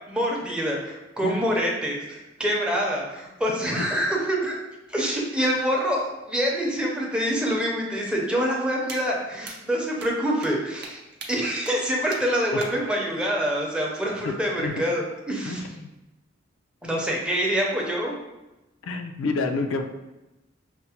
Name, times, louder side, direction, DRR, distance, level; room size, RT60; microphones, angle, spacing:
voice 1, 0.1-4.6 4.9-11.0 11.3-15.6 16.8-18.1, equal, 5° right, -2 dB, 0.6 m, -26 dB
sound 1, 8.9-9.0 9.4-9.6 10.0-10.1 10.4-10.5 10.8-10.9 11.2-11.3 11.7-11.8 12.1-12.2 12.6-12.7, right 4 dB, 55° right, 0.6 m, -38 dB
voice 2, 14.3-14.7 15.4-15.9 18.8-19.8, left 3 dB, 90° left, 5 dB, 0.4 m, -29 dB
5.7 x 2.1 x 2.8 m, 1.0 s
head